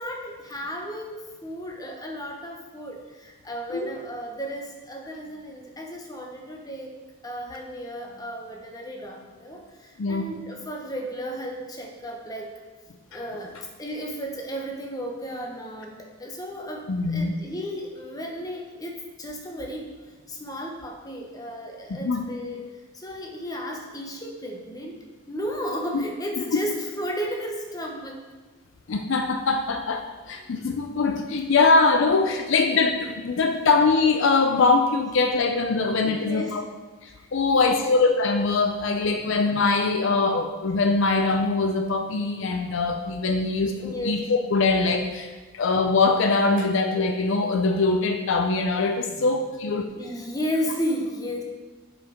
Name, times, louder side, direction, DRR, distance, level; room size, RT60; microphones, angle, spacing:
voice 1, 0.0-12.5 13.1-19.9 20.3-22.6 22.9-24.9 25.3-28.2 36.0-36.6 37.2-37.8 39.1-39.2 43.8-44.2 49.1-49.3 49.9-51.4, equal, 15° left, 1 dB, 0.9 m, -34 dB
voice 2, 16.9-17.3 21.9-22.3 25.9-26.0 28.9-36.6 37.0-45.3 45.5-49.9, left 3 dB, 55° left, 5 dB, 0.4 m, -22 dB
7.5 x 5.0 x 5.0 m, 1.3 s
head